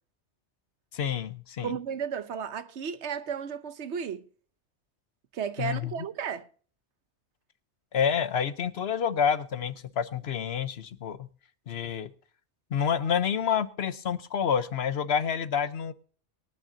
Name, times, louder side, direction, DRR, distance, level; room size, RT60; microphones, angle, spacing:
voice 1, 0.9-1.8 5.6-5.9 7.9-11.3 11.7-12.1 12.7-15.9, left 7 dB, 65° left, 1.0 m, -28 dB
voice 2, 1.6-4.3 5.3-6.5, right 7 dB, 75° right, 1.1 m, -34 dB
23.0 x 9.1 x 2.7 m
omnidirectional pair, 1.2 m